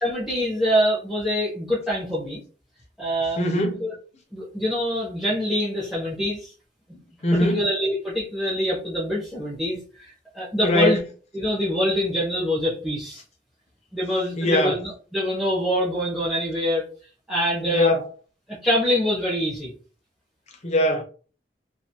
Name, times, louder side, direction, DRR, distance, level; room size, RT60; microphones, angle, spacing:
voice 1, 0.0-2.4 3.0-3.4 3.8-3.9 4.3-6.5 7.3-11.0 11.3-13.2 13.9-16.8 17.3-17.9 18.5-19.7, equal, ahead, 0.7 m, -25 dB
voice 2, 3.4-3.8 7.2-7.6 10.6-11.0 14.4-14.8 17.6-18.0 20.6-21.0, left 1 dB, 40° left, 0.6 m, -21 dB
2.4 x 2.3 x 2.8 m
head